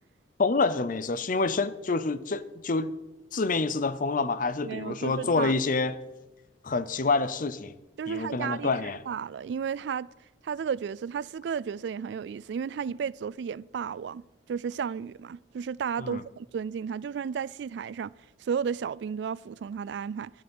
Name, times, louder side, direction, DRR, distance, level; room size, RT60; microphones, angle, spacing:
voice 1, 0.4-2.9 3.3-6.0 6.6-7.7 8.1-9.0 16.0-16.2, left 3 dB, 50° left, 0.6 m, -27 dB
voice 2, 4.6-5.5 8.0-10.1 10.4-18.1 18.4-20.3, right 7 dB, 70° right, 0.3 m, -33 dB
13.0 x 11.0 x 5.5 m
head